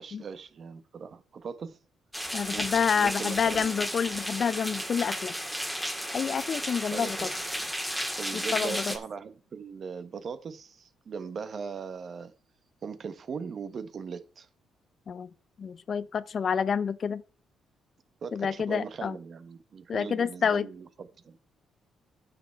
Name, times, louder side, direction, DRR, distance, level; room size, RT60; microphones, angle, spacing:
voice 1, 0.0-1.8 2.5-3.9 6.9-7.7 8.2-12.3 12.8-14.5 18.2-21.4, right 6 dB, 50° right, 1.1 m, -40 dB
sound 1, 2.1-9.0, equal, ahead, 1.8 m, -33 dB
voice 2, 2.3-5.3 6.1-7.2 8.3-8.9 15.1-15.3 15.6-17.2 18.3-19.1 19.9-20.7, left 7 dB, 50° left, 0.6 m, -28 dB
9.3 x 6.5 x 4.5 m
cardioid pair, 90°, 0 cm